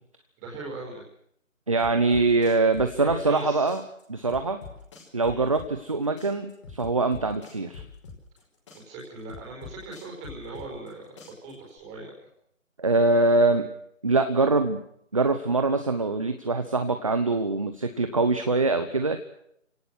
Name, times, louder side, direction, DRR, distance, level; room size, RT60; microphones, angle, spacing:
voice 1, 0.4-1.1 2.9-3.7 5.2-5.4 8.7-12.2, right 3 dB, 10° right, -2 dB, 4.6 m, -40 dB
voice 2, 1.7-3.8 4.1-4.6 5.1-7.8 12.8-13.7 14.0-14.8 15.1-19.2, right 3 dB, 25° right, 8 dB, 1.0 m, -23 dB
sound 1, 1.8-3.4 3.7-5.9 6.2-8.4 8.7-10.9 11.2-11.8, left 5 dB, 25° left, 4.9 m, -44 dB
26.0 x 18.0 x 6.3 m, 0.70 s
figure-of-eight pair, 165°, 39 cm